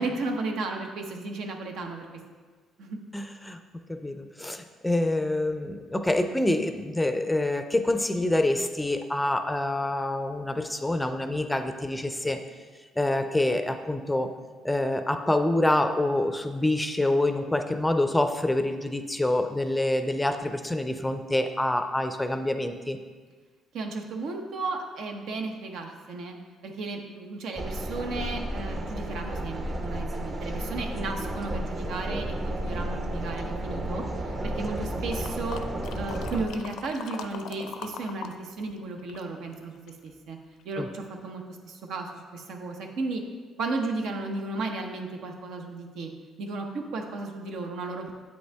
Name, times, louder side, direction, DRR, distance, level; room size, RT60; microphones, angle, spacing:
voice 1, 0.0-2.1 2.8-3.0 23.7-26.4 26.6-35.6 36.0-40.4 40.6-43.2 43.6-46.1 46.4-48.1, right 3 dB, 75° right, 3 dB, 0.8 m, -34 dB
voice 2, 3.1-3.6 3.9-12.4 13.0-14.3 14.6-23.0 40.8-40.9, left 1 dB, 10° left, 7 dB, 0.5 m, -26 dB
sound 1, 27.6-36.5, right 1 dB, 30° right, 0.8 m, -32 dB
sound 2, 35.1-38.4 38.6-40.1 40.6-40.7, left 6 dB, 75° left, 0.5 m, -41 dB
7.9 x 5.3 x 3.4 m, 1.5 s
cardioid pair, 90°, 0 cm